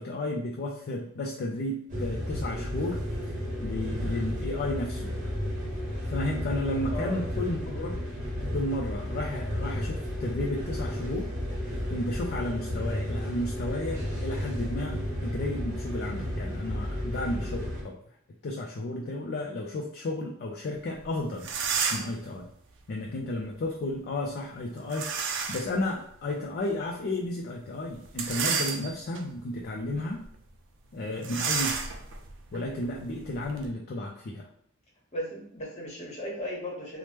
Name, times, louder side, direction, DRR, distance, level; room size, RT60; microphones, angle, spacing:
voice 1, 0.0-3.0 3.6-5.1 6.1-8.0 8.5-11.3 11.9-17.9 18.4-21.5 21.9-22.5 22.9-30.2 30.9-31.8 32.5-34.4, left 1 dB, 50° left, -1 dB, 0.4 m, -33 dB
sound 1, 1.9-17.8, equal, 40° right, 1.0 m, -33 dB
voice 2, 6.9-7.3 31.1-31.3 35.1-37.0, equal, 35° left, -2 dB, 1.0 m, -36 dB
sound 2, 21.0-21.1 21.4-22.2 24.9-25.8 26.3-26.4 28.1-29.2 29.8-30.0 30.2-30.4 31.2-33.7, right 6 dB, 60° right, 0.4 m, -31 dB
2.9 x 2.0 x 3.3 m, 0.68 s
head